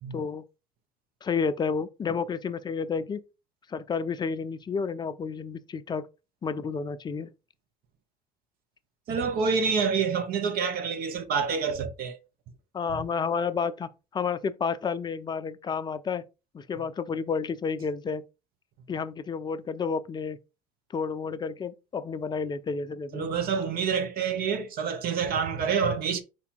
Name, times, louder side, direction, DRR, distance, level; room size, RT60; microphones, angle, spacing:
voice 1, 0.1-0.4 1.2-3.2 3.7-6.1 6.4-7.3 12.7-16.2 16.5-18.2 18.9-20.4 20.9-23.3, left 5 dB, 20° left, 0.5 m, -31 dB
voice 2, 9.1-12.2 23.1-26.2, right 6 dB, 50° right, 0.8 m, -27 dB
4.6 x 2.7 x 4.2 m
hypercardioid pair, 65°, 20 cm